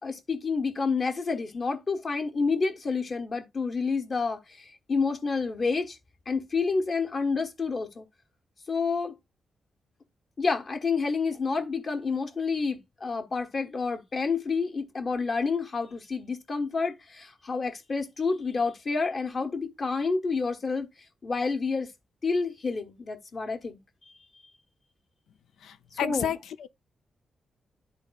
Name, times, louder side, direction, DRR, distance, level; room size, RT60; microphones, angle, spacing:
voice 1, 0.0-6.0 6.3-8.1 8.7-9.1 10.4-20.9 21.2-21.9 22.2-23.8 26.0-26.3, left 4 dB, 45° left, 1.3 m, -29 dB
voice 2, 25.6-26.7, left 9 dB, 90° left, 0.5 m, -31 dB
12.0 x 4.1 x 2.3 m
cardioid pair, 85°, 0 cm